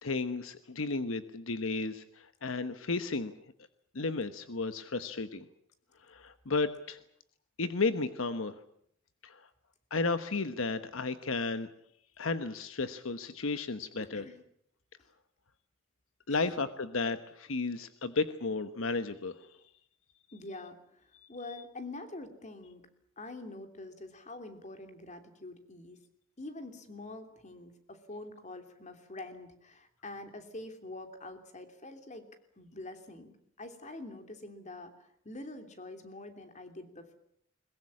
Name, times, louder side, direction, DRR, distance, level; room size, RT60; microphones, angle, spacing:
voice 1, 0.0-3.3 3.9-5.5 6.1-7.0 7.6-8.6 9.2-9.5 9.9-11.7 12.2-14.3 16.3-19.5, left 3 dB, 75° left, 11 dB, 1.1 m, -33 dB
voice 2, 14.0-14.4 16.3-16.5 20.3-22.8 23.2-26.0 26.4-32.3 32.6-37.2, left 2 dB, 35° left, 7 dB, 3.1 m, -45 dB
22.0 x 21.5 x 8.6 m, 0.70 s
head